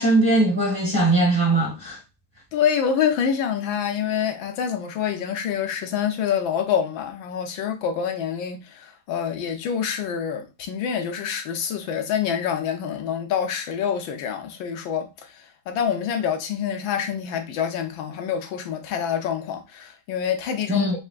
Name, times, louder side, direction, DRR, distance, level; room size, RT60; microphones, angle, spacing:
voice 1, 0.0-2.0 20.7-20.9, right 2 dB, 15° right, 0.9 m, -20 dB
voice 2, 2.5-15.1 15.7-21.0, left 8 dB, 70° left, 1.5 m, -26 dB
5.4 x 3.4 x 2.4 m
omnidirectional pair, 2.3 m